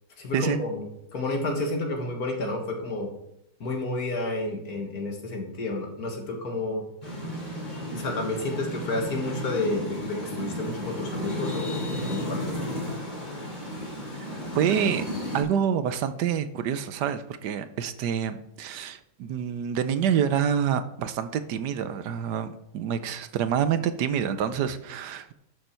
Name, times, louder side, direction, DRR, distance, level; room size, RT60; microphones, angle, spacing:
voice 1, 0.2-0.8 1.1-3.1 3.6-6.8 7.9-12.6, left 2 dB, 60° left, 2 dB, 2.3 m, -30 dB
sound 1, 7.0-15.4, equal, 25° left, 3.5 m, -33 dB
voice 2, 14.5-15.0 15.3-25.3, right 8 dB, 75° right, 11 dB, 1.3 m, -27 dB
11.5 x 6.9 x 4.5 m, 0.79 s
omnidirectional pair, 1.8 m